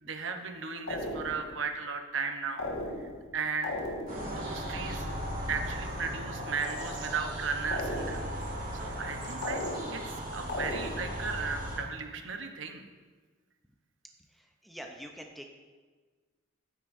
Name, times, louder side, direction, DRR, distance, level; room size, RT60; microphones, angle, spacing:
voice 1, 0.0-2.7 3.0-3.8 4.3-5.1 5.5-8.3 8.7-9.6 9.9-12.8, right 5 dB, 60° right, 5 dB, 0.8 m, -36 dB
sound 1, 0.9-1.6 2.6-3.3 3.6-4.4 7.7-8.4 9.4-10.2 10.5-11.2, left 1 dB, 70° left, 1.6 m, -36 dB
sound 2, 4.1-11.8, equal, 40° right, 1.9 m, -37 dB
sound 3, 4.4-5.3 6.3-7.5 8.4-8.5 9.2-10.1 11.2-11.3, right 3 dB, 20° right, 1.8 m, -48 dB
voice 2, 14.3-15.4, equal, ahead, 2 dB, 0.5 m, -46 dB
12.0 x 9.7 x 2.6 m, 1.4 s
head